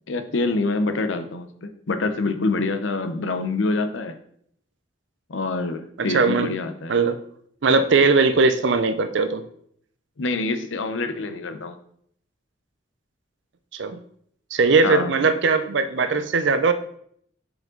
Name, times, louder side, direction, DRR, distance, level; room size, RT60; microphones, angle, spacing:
voice 1, 0.1-4.1 5.3-6.9 10.2-11.8 14.8-15.2, left 3 dB, 80° left, 8 dB, 0.7 m, -26 dB
voice 2, 6.0-6.5 6.9-7.2 7.6-9.4 13.7-14.0 14.5-16.7, right 4 dB, 70° right, 10 dB, 0.5 m, -19 dB
6.2 x 5.2 x 3.8 m, 0.66 s
head